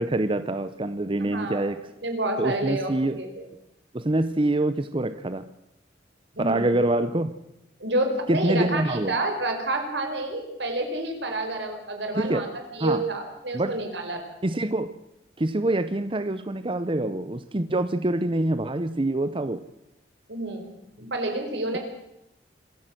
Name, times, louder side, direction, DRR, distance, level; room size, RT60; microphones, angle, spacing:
voice 1, 0.0-1.8 2.4-3.2 3.9-5.5 6.4-7.3 8.3-9.1 12.1-12.5 12.8-13.0 13.5-13.8 14.4-14.9 15.4-19.6, right 1 dB, 30° right, 12 dB, 0.8 m, -25 dB
voice 2, 1.2-1.6 2.0-3.3 6.3-6.7 7.8-14.2 20.3-21.8, right 2 dB, 80° right, 5 dB, 4.8 m, -29 dB
25.5 x 14.5 x 7.8 m, 0.87 s
head